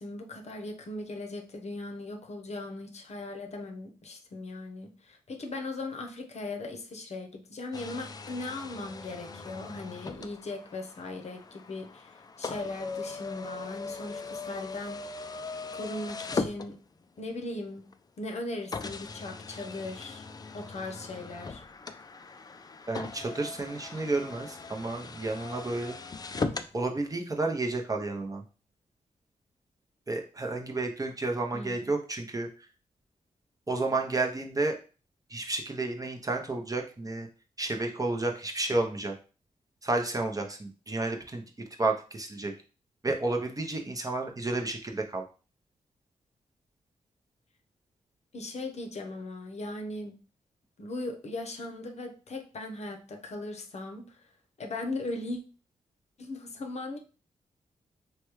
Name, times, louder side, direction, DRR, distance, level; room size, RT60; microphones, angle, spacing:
voice 1, 0.0-15.3 15.7-16.8 17.2-17.8 18.2-20.3 20.5-21.6 31.5-31.9 48.3-50.2 50.8-54.2 54.6-55.4 56.2-57.0, left 2 dB, 55° left, 4 dB, 0.7 m, -38 dB
sound 1, 7.7-17.2 17.9-18.0 18.7-26.7, left 4 dB, 30° left, 0.3 m, -39 dB
voice 2, 22.9-26.0 26.7-28.4 30.1-32.5 33.7-34.8 35.3-37.3 37.6-39.1 39.8-41.4 41.8-42.5 43.0-45.2, right 2 dB, 25° right, 2 dB, 0.7 m, -31 dB
3.2 x 2.2 x 3.0 m, 0.35 s
supercardioid pair, 45°, 14 cm